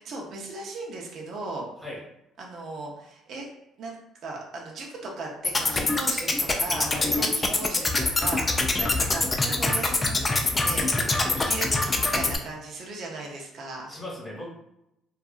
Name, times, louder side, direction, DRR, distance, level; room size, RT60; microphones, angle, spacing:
voice 1, 0.0-1.7 2.4-3.5 3.8-6.9 7.1-13.9, right 3 dB, 60° right, -1 dB, 0.6 m, -37 dB
sound 1, 5.4-12.4, left 2 dB, 25° left, 0.4 m, -24 dB
voice 2, 13.9-14.5, left 1 dB, 10° left, -5 dB, 1.2 m, -38 dB
2.7 x 2.3 x 2.3 m, 0.84 s
cardioid pair, 85°, 0 cm